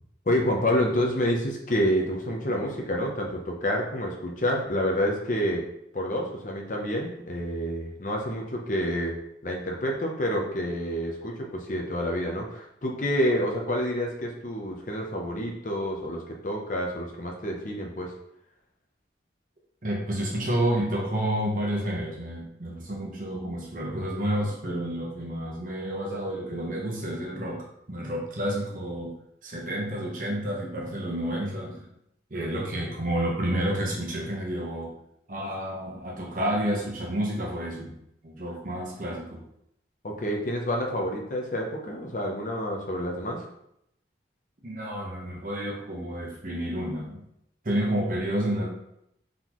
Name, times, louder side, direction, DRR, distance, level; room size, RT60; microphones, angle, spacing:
voice 1, 0.3-5.6 5.9-9.1 9.4-18.1 40.0-43.5, equal, 45° left, 0 dB, 0.7 m, -28 dB
voice 2, 19.8-29.1 29.4-31.9 32.3-34.9 35.3-37.9 38.2-39.4 44.6-47.2 47.6-48.7, right 1 dB, 45° right, -2 dB, 1.0 m, -30 dB
4.0 x 3.8 x 3.0 m, 0.77 s
head